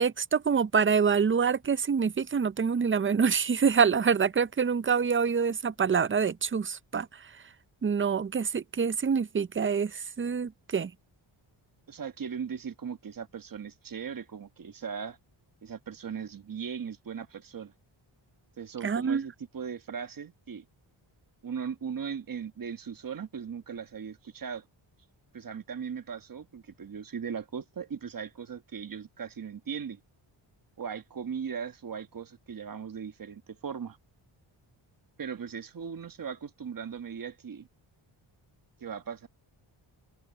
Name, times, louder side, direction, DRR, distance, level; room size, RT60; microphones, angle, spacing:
voice 1, 0.0-7.4 7.8-10.9 18.8-19.3, right 6 dB, 25° right, 0.5 m, -26 dB
voice 2, 11.9-15.2 15.6-17.7 18.6-20.7 21.4-24.6 25.3-30.0 30.8-34.0 35.2-37.7 38.8-39.3, right 7 dB, 40° right, 1.3 m, -38 dB
cardioid pair, 85°, 50 cm